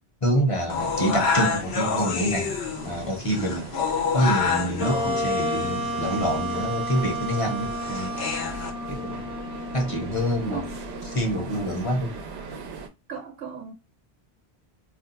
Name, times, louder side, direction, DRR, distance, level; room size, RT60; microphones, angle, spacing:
voice 1, 0.2-2.6 2.8-8.2 8.9-9.2 9.7-10.6 11.1-12.1, equal, 35° left, 0.7 m, -26 dB
sound 1, 0.7-8.7, left 5 dB, 80° left, 0.9 m, -28 dB
sound 2, 0.8-12.9, right 4 dB, 90° right, 0.9 m, -40 dB
Wind instrument woodwind instrument, 4.8-12.2, equal, 5° right, 0.6 m, -32 dB
voice 2, 10.5-10.8 13.1-13.7, right 6 dB, 55° right, 1.0 m, -36 dB
2.5 x 2.2 x 3.9 m
omnidirectional pair, 1.1 m